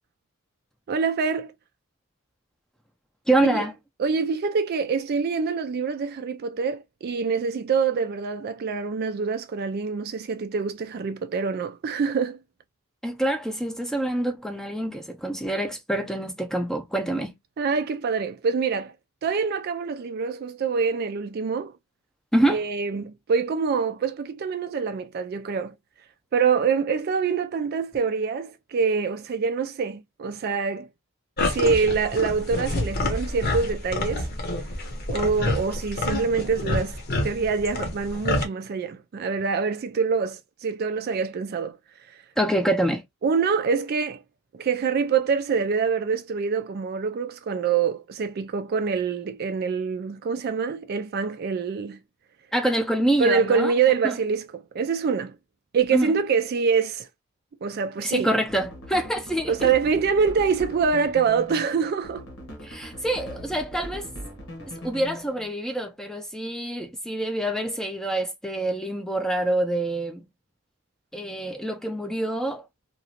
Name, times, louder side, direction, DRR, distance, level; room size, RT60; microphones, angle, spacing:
voice 1, 0.9-1.5 3.4-3.6 4.0-12.4 17.6-18.9 19.2-21.7 22.5-25.8 26.3-30.9 31.4-34.3 35.1-41.8 42.1-42.2 43.2-44.2 44.5-52.0 53.2-55.4 55.7-57.1 57.6-58.3 59.5-62.3, right 5 dB, 45° right, 0.3 m, -25 dB
voice 2, 3.3-3.7 13.0-17.3 22.3-22.6 42.4-43.0 52.5-53.7 54.0-54.2 55.9-56.1 58.0-59.7 62.6-64.1 64.7-70.2 71.1-72.7, right 1 dB, ahead, 0.6 m, -26 dB
sound 1, 31.4-38.4, left 2 dB, 45° left, 0.8 m, -28 dB
sound 2, 58.4-65.5, equal, 70° left, 1.2 m, -40 dB
2.9 x 2.5 x 2.8 m
head